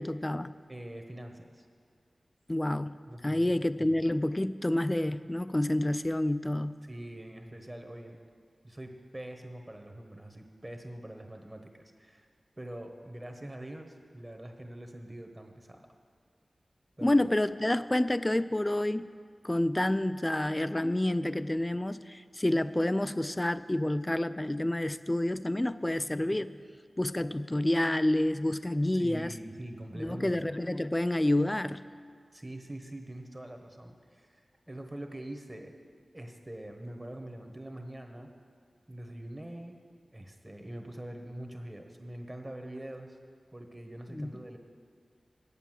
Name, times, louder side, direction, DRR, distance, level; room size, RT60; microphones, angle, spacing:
voice 1, 0.0-0.5 2.5-3.0 3.2-6.8 17.0-19.1 19.4-26.5 27.0-29.3 30.0-31.8 44.1-44.3, left 1 dB, 20° left, 14 dB, 0.3 m, -28 dB
voice 2, 0.7-1.7 3.1-3.9 6.9-8.2 8.6-12.3 12.6-15.9 17.0-17.2 29.0-30.5 32.3-34.4 34.7-35.7 36.1-38.3 38.9-39.8 40.1-43.2 43.5-44.6, right 1 dB, 25° right, 4 dB, 1.2 m, -44 dB
8.6 x 8.2 x 7.5 m, 2.1 s
cardioid pair, 50°, 0 cm